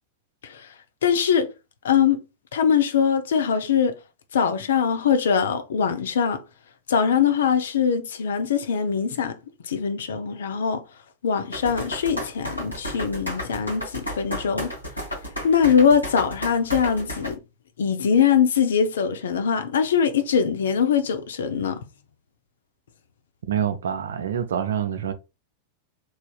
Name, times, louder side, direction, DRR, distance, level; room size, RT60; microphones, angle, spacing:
voice 1, 1.0-1.5 1.8-2.2 2.5-3.9 4.3-6.4 6.9-9.4 9.6-10.8 11.2-14.7 15.4-17.4 17.8-21.8, left 7 dB, 65° left, 0.5 m, -22 dB
sound 1, 11.5-17.3, equal, 85° left, 1.5 m, -32 dB
voice 2, 23.5-25.1, right 9 dB, 65° right, 0.4 m, -26 dB
3.2 x 2.6 x 2.3 m
figure-of-eight pair, 90°, 0 cm